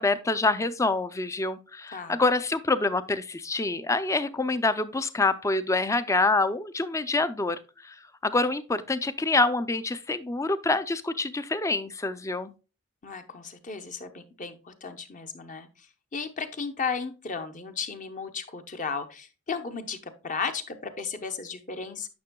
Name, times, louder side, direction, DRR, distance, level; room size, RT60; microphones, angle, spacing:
voice 1, 0.0-7.6 7.8-7.9 8.2-12.5, left 3 dB, 15° left, 0.4 m, -26 dB
voice 2, 13.0-15.9 16.1-22.1, left 5 dB, 40° left, 0.8 m, -35 dB
9.5 x 5.9 x 2.2 m
head